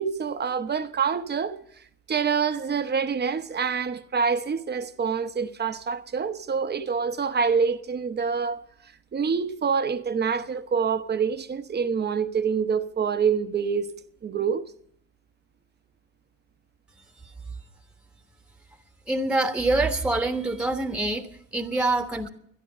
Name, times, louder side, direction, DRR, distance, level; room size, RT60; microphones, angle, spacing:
voice 1, 0.0-1.6 2.1-8.6 9.1-13.9 14.2-14.6, right 6 dB, 35° right, 0.9 m, -26 dB
voice 2, 19.1-22.3, right 2 dB, 5° right, 1.2 m, -25 dB
13.0 x 10.5 x 6.7 m
cardioid pair, 90°, 30 cm